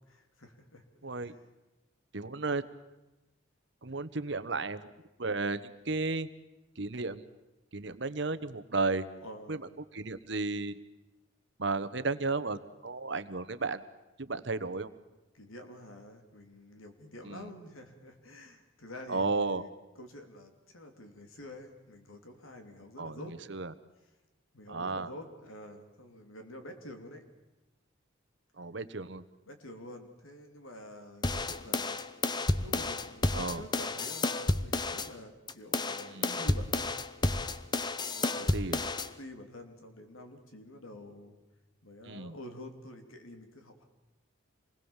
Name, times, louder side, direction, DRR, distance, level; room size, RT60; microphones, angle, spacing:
voice 1, 0.1-0.8 1.2-1.4 9.2-9.6 15.3-19.7 19.9-23.3 24.5-27.2 29.5-32.0 32.5-36.9 38.0-41.4 41.8-43.8, left 1 dB, 85° left, 5 dB, 3.2 m, -48 dB
voice 2, 1.0-1.3 2.1-2.6 3.8-4.9 5.2-6.3 6.8-7.2 7.7-9.1 9.5-9.6 9.9-10.8 11.6-13.8 14.2-14.9 17.2-17.5 19.1-19.6 23.0-23.7 24.7-25.1 28.6-29.2 33.3-33.6 36.1-36.4 38.4-38.8 42.0-42.3, right 3 dB, 60° right, 13 dB, 1.1 m, -33 dB
sound 1, 31.2-35.1 35.5-39.1, left 2 dB, 20° left, 0.7 m, -31 dB
27.0 x 20.5 x 7.3 m, 1.0 s
head